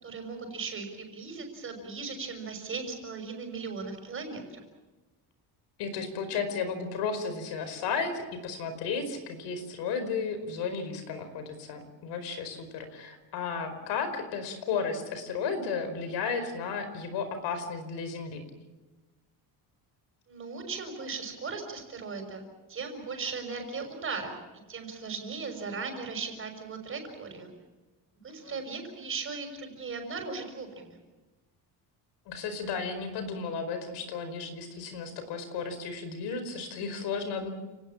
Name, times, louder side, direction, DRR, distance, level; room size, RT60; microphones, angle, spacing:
voice 1, 0.0-4.6 20.3-22.4 22.7-24.3 24.7-27.5 28.2-31.0, right 4 dB, 30° right, 5 dB, 6.1 m, -37 dB
voice 2, 5.8-18.5 28.4-28.6 32.3-37.5, left 5 dB, 85° left, 9 dB, 5.0 m, -34 dB
30.0 x 19.0 x 7.4 m, 1.2 s
cardioid pair, 165°, 40 cm